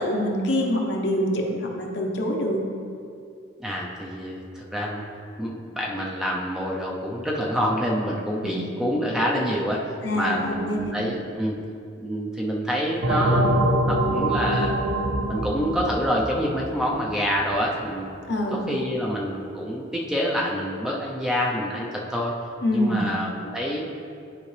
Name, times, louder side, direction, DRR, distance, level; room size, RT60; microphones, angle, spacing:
voice 1, 0.0-2.6 8.4-8.6 10.0-10.9 18.3-18.6 22.6-23.0, equal, 60° left, 0 dB, 0.9 m, -25 dB
voice 2, 3.6-5.0 5.4-9.8 10.1-11.6 12.0-14.8 15.3-18.1 18.5-22.3 22.7-23.8, equal, 5° right, -3 dB, 0.6 m, -27 dB
sound 1, 13.0-17.4, right 1 dB, 65° right, 0.6 m, -24 dB
11.0 x 4.8 x 3.3 m, 2.4 s
head